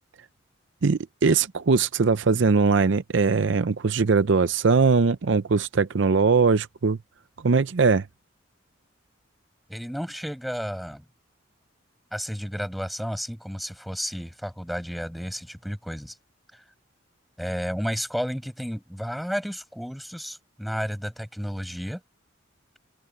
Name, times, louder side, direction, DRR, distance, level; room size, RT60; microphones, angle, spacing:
voice 1, 0.8-7.0 7.4-8.1, right 4 dB, 65° right, 0.6 m, -21 dB
voice 2, 9.7-11.0 12.1-16.2 16.5-16.6 17.4-22.0, equal, ahead, 6.5 m, -32 dB
open air
head